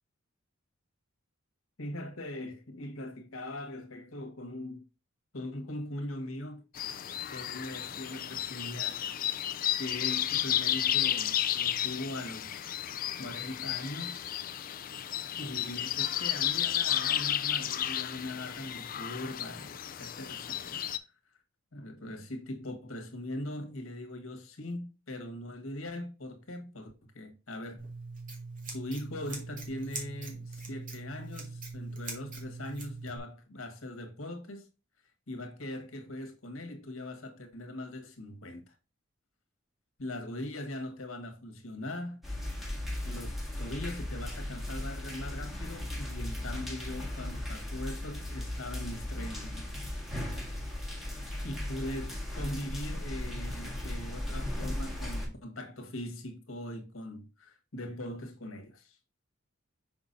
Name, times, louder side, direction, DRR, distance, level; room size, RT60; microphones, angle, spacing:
voice 1, 1.8-4.8 5.3-6.6 7.3-9.0 9.8-12.8 13.2-14.2 15.4-20.8 21.7-27.8 28.7-34.7 35.3-38.7 40.0-42.2 43.0-49.7 51.4-59.0, left 1 dB, 80° left, 1.6 m, -41 dB
sound 1, 6.8-21.0, left 11 dB, 40° left, 0.4 m, -32 dB
Scissors, 27.8-33.2, right 3 dB, 40° right, 2.2 m, -42 dB
sound 2, 42.2-55.3, left 1 dB, ahead, 1.8 m, -37 dB
6.1 x 6.0 x 2.6 m
head